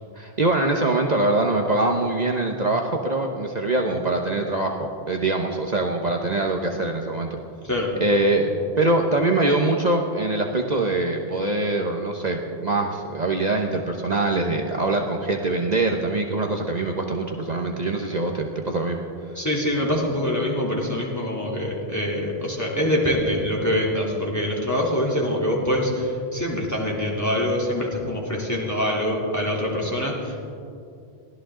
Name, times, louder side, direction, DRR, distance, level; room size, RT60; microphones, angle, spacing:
voice 1, 0.2-7.4 8.0-19.0, right 2 dB, 45° right, 2 dB, 1.1 m, -23 dB
voice 2, 19.3-30.5, left 1 dB, 15° left, -4 dB, 3.3 m, -24 dB
23.0 x 16.5 x 3.8 m, 2.5 s
omnidirectional pair, 1.1 m